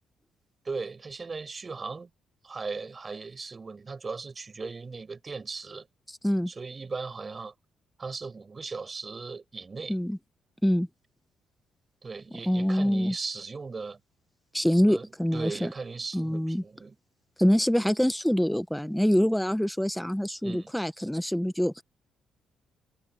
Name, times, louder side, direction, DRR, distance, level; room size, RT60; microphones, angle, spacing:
voice 1, 0.6-2.1 2.4-5.9 6.5-7.5 8.0-9.9 12.0-14.0 14.9-16.9 20.4-20.7, right 4 dB, 35° right, 7.9 m, -38 dB
voice 2, 12.5-13.1 14.5-15.7 16.1-16.6 17.4-21.8, equal, 5° left, 1.5 m, -25 dB
supercardioid pair, 65°, 0 cm